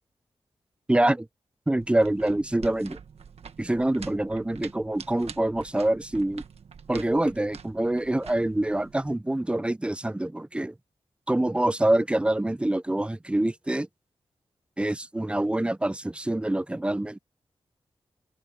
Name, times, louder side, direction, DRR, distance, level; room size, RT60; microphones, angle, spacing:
voice 1, 0.9-1.3 1.7-3.0 3.6-6.4 6.9-10.7 11.3-13.9 14.8-17.2, right 1 dB, 10° right, 0.4 m, -25 dB
sound 1, 1.8-9.1, right 6 dB, 85° right, 1.4 m, -46 dB
wide cardioid pair, 85°, 10 cm